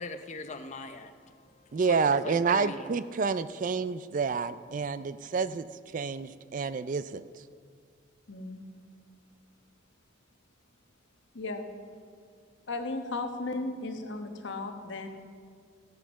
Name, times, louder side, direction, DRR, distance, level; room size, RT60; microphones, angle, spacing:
voice 1, 0.0-2.9, left 2 dB, 35° left, 8 dB, 0.6 m, -41 dB
voice 2, 1.7-5.7 5.9-7.2, right 5 dB, 40° right, 14 dB, 0.4 m, -29 dB
voice 3, 8.3-8.6 11.3-11.7 12.7-15.1, left 2 dB, 65° left, 5 dB, 1.2 m, -35 dB
16.0 x 8.1 x 6.3 m, 2.1 s
head